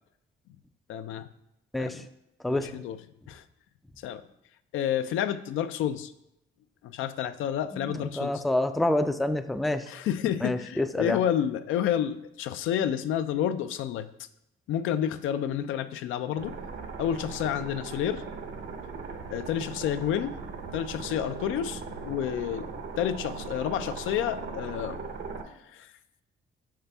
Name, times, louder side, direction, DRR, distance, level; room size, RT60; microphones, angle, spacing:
voice 1, 0.9-1.3 1.8-2.1 2.5-3.0 3.3-3.4 4.0-4.2 4.7-6.1 6.8-8.4 9.9-14.1 14.7-16.5 17.0-18.2 19.3-20.3 20.7-22.7 23.0-25.0 25.7-25.9, left 10 dB, 85° left, 11 dB, 0.4 m, -30 dB
voice 2, 7.7-9.8 10.4-11.2, left 1 dB, ahead, 8 dB, 0.3 m, -27 dB
sound 1, 16.4-25.4, right 4 dB, 65° right, 0.8 m, -39 dB
5.8 x 5.6 x 3.4 m, 0.85 s
cardioid pair, 90°, 20 cm